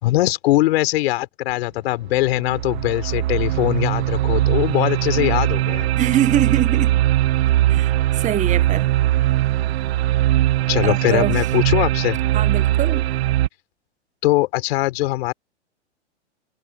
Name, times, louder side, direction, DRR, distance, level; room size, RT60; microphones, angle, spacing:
voice 1, 0.0-5.9 10.7-12.2 14.2-15.3, left 17 dB, 60° left, 4.6 m, -21 dB
sound 1, 1.5-1.6 2.1-13.5, right 14 dB, 60° right, 1.7 m, -20 dB
voice 2, 6.0-7.0 7.7-8.9 10.8-11.4 12.3-13.1, right 11 dB, 20° right, 1.5 m, -23 dB
hypercardioid pair, 120°, 35 cm